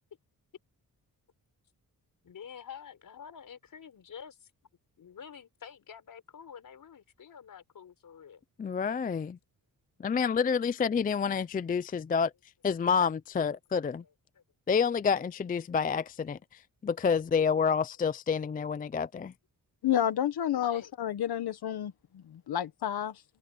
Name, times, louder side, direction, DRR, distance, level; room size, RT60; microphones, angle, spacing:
voice 1, 2.2-4.5 5.0-8.4 14.3-14.4 20.5-20.9, left 7 dB, 60° left, 4.8 m, -48 dB
voice 2, 8.6-9.4 10.0-12.3 12.6-14.0 14.7-19.3, left 6 dB, 25° left, 0.4 m, -28 dB
voice 3, 19.8-23.2, left 10 dB, 90° left, 1.3 m, -30 dB
wide cardioid pair, 150°, 38 cm